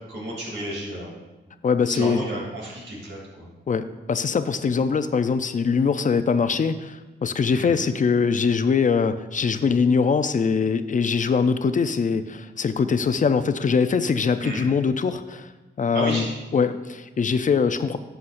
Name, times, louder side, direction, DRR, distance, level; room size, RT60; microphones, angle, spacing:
voice 1, 0.1-1.1 1.9-3.4 7.5-7.7 14.4-14.6 15.9-16.3, right 1 dB, 85° right, -4 dB, 3.1 m, -31 dB
voice 2, 1.6-2.2 3.7-15.5 15.8-18.0, left 5 dB, 45° left, 11 dB, 0.5 m, -22 dB
11.5 x 7.9 x 2.6 m, 1.1 s
cardioid pair, 80°, 19 cm